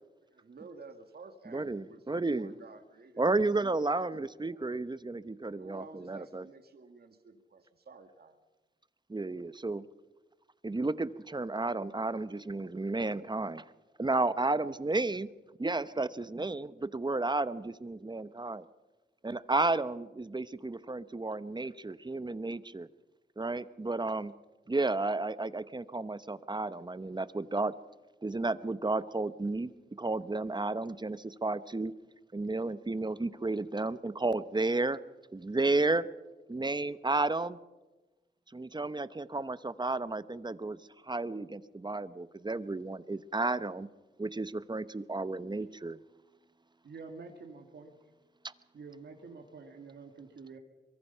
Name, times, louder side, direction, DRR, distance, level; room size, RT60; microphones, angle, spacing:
voice 1, 0.3-4.6 5.4-8.4, right 4 dB, 65° right, 7 dB, 1.9 m, -53 dB
voice 2, 1.5-2.5 3.2-6.4 9.1-9.9 10.6-13.6 14.0-15.3 15.6-18.6 19.2-22.9 23.4-24.3 24.7-27.7 28.2-29.7 30.0-31.9 32.3-35.0 35.3-36.1 36.5-37.6 38.5-40.8 41.1-43.9 44.2-46.0, right 2 dB, 25° right, 15 dB, 0.9 m, -32 dB
voice 3, 46.8-47.9 48.7-50.6, right 4 dB, 80° right, 3 dB, 2.1 m, -48 dB
23.5 x 23.0 x 5.6 m, 1.2 s
cardioid pair, 60°, 18 cm